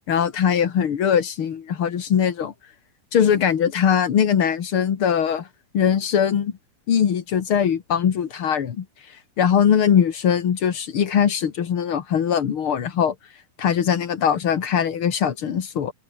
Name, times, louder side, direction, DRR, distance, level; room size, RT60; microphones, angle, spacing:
voice 1, 0.1-2.5 3.1-5.5 5.7-6.5 6.9-8.8 9.4-13.1 13.6-15.9, left 8 dB, 85° left, 1.2 m, -21 dB
omnidirectional pair, 5.2 m